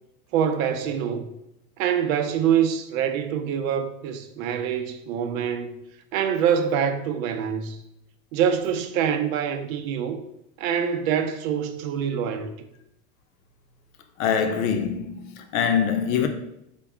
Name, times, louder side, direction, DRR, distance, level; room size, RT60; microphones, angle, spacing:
voice 1, 0.3-1.3 1.8-5.7 6.1-7.8 8.3-10.2 10.6-12.5, right 8 dB, 75° right, 0.6 m, -25 dB
voice 2, 14.2-16.3, left 7 dB, 75° left, 0.6 m, -24 dB
3.5 x 2.3 x 3.5 m
supercardioid pair, 140°, 41 cm